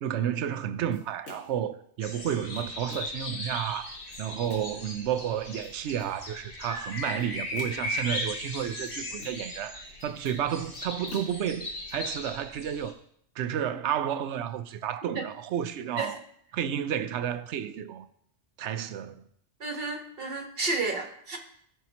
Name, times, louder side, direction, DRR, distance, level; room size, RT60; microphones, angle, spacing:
voice 1, 0.0-13.0 13.4-16.2 16.5-18.1 18.6-19.3, right 9 dB, 75° right, 0.9 m, -31 dB
sound 1, 0.9-1.7 2.3-3.3 3.9-4.8 5.4-6.2 7.0-8.0 8.6-9.6 9.9-11.9, left 3 dB, 70° left, 2.0 m, -49 dB
sound 2, 2.0-12.9, left 1 dB, 50° left, 1.6 m, -37 dB
voice 2, 19.6-21.4, right 3 dB, 55° right, 1.4 m, -32 dB
15.0 x 5.8 x 2.9 m
omnidirectional pair, 1.2 m